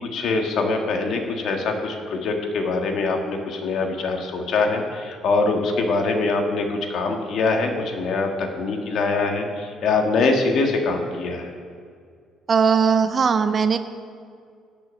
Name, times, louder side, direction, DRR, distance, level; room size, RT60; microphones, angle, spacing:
voice 1, 0.0-11.5, left 3 dB, 50° left, 3 dB, 1.7 m, -23 dB
voice 2, 12.5-13.8, right 6 dB, 30° right, 10 dB, 0.5 m, -19 dB
18.0 x 6.2 x 6.5 m, 2.2 s
cardioid pair, 160°, 0 cm